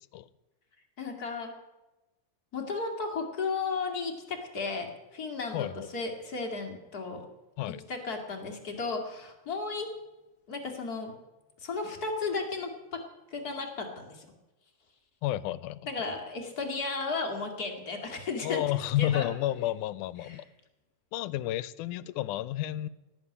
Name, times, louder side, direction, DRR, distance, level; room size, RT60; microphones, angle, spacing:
voice 1, 1.0-1.5 2.5-7.2 7.7-9.9 10.5-11.1 11.6-13.0 13.3-14.3 15.9-18.6 19.0-19.3 20.2-20.4, left 4 dB, 35° left, 2 dB, 2.4 m, -34 dB
voice 2, 5.5-5.9 7.6-7.8 15.2-15.8 18.4-20.4 21.1-22.9, left 14 dB, 85° left, 18 dB, 2.1 m, -31 dB
18.0 x 7.4 x 9.9 m, 1.0 s
omnidirectional pair, 3.5 m